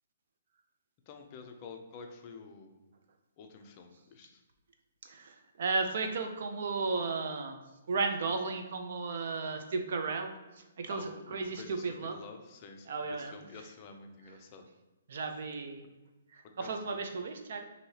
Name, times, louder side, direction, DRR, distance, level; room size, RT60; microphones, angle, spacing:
voice 1, 1.1-2.8 3.4-4.3 10.9-14.6 16.6-17.0, left 4 dB, 30° left, 4 dB, 0.4 m, -49 dB
voice 2, 5.6-7.6 7.9-10.3 10.8-12.2 12.9-13.3 15.1-15.8 16.6-17.6, right 4 dB, 55° right, 5 dB, 0.5 m, -34 dB
4.6 x 2.7 x 2.8 m, 1.1 s
hypercardioid pair, 165°, 0 cm